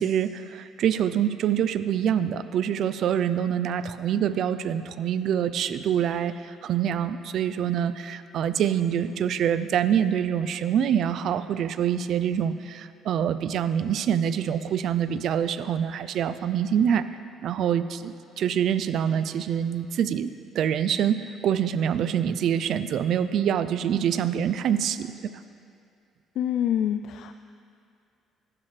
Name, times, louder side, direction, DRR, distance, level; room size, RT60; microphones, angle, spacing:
voice 1, 0.0-17.0 17.4-20.3 20.5-25.3, right 9 dB, 60° right, 13 dB, 0.4 m, -25 dB
voice 2, 26.4-27.3, left 10 dB, 70° left, 8 dB, 0.3 m, -26 dB
14.0 x 12.0 x 3.3 m, 2.4 s
cardioid pair, 125°, 0 cm